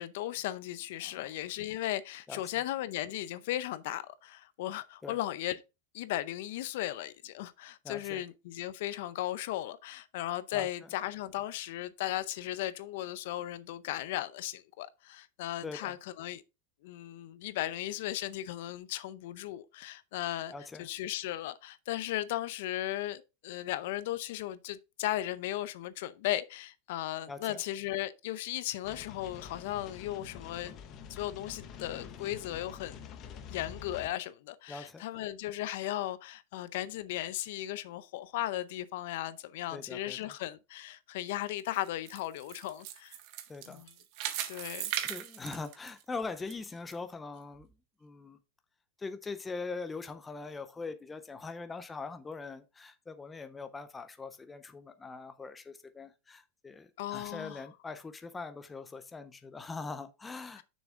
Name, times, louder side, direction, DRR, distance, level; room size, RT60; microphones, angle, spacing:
voice 1, 0.0-5.6 5.9-16.4 16.8-20.5 20.8-30.7 31.1-33.0 33.5-43.2 43.7-43.9 44.5-44.9 57.0-57.6 60.6-60.7, left 14 dB, 55° left, 0.6 m, -36 dB
voice 2, 7.8-8.2 10.5-10.7 15.6-15.9 20.5-20.9 27.3-27.6 34.7-35.0 39.7-40.4 43.5-43.8 45.0-47.7 48.0-48.4 49.0-60.6, left 4 dB, 10° left, 0.5 m, -42 dB
sound 1, 28.8-34.1, left 7 dB, 30° left, 0.8 m, -47 dB
sound 2, 41.6-46.5 46.9-47.0 47.6-47.7, right 12 dB, 40° right, 0.9 m, -38 dB
6.7 x 6.3 x 3.6 m
supercardioid pair, 175°, 0 cm